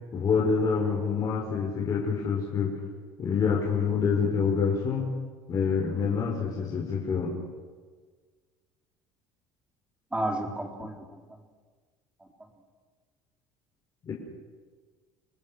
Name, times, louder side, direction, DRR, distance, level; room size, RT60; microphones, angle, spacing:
voice 1, 0.1-2.7 3.2-5.1 5.5-7.3 14.0-14.1, left 5 dB, 40° left, -1 dB, 4.9 m, -26 dB
voice 2, 10.1-11.2, right 1 dB, 10° right, 2 dB, 4.5 m, -32 dB
28.0 x 19.5 x 6.6 m, 1.5 s
supercardioid pair, 105°, 10 cm